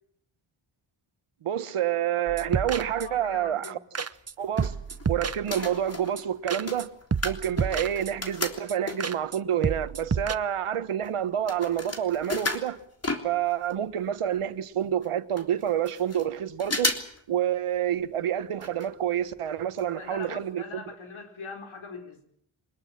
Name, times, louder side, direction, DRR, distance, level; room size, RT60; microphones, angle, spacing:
voice 1, 1.4-3.8 4.4-4.8 5.1-6.9 7.2-12.8 13.2-16.9 17.3-20.8, right 10 dB, 85° right, 1.4 m, -28 dB
sound 1, 2.3-3.3 3.6-3.7 4.0-4.3 4.6-5.8 6.2-6.9 7.1-8.3 8.7-8.8 9.0-9.4 9.6-10.4, right 5 dB, 30° right, 0.9 m, -31 dB
voice 2, 2.9-3.8 19.8-22.2, left 4 dB, 70° left, 4.3 m, -42 dB
sound 2, 4.2-5.1 5.4-9.3 9.9-10.0 10.2-13.8 14.1-14.2 14.3-14.4 15.0-15.1 15.4-16.3 16.6-17.2 17.5-17.6 18.6-18.9 19.2-19.3 19.8-19.9 20.2-20.3, left 2 dB, 30° left, 3.3 m, -34 dB
23.5 x 20.5 x 7.5 m
cardioid pair, 75°, 50 cm